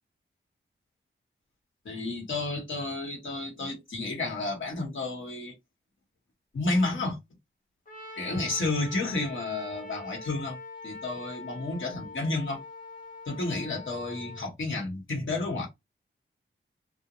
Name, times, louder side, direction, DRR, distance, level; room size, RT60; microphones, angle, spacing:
voice 1, 1.8-5.5 6.5-7.2 8.2-10.6 10.8-12.6 13.3-15.7, left 2 dB, 70° left, 1.0 m, -31 dB
Trumpet, 7.8-14.4, left 2 dB, 45° left, 0.9 m, -44 dB
2.4 x 2.1 x 2.9 m
wide cardioid pair, 160°, 20 cm